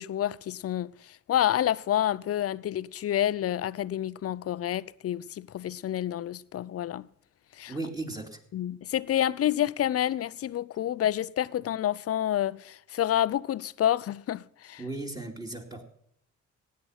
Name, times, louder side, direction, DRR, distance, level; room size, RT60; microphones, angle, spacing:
voice 1, 0.0-7.1 7.6-7.7 8.5-14.8, left 11 dB, 50° left, 0.6 m, -28 dB
voice 2, 7.7-8.4 14.8-15.9, right 2 dB, 10° right, 2.7 m, -36 dB
16.5 x 9.4 x 5.8 m
cardioid pair, 90°, 30 cm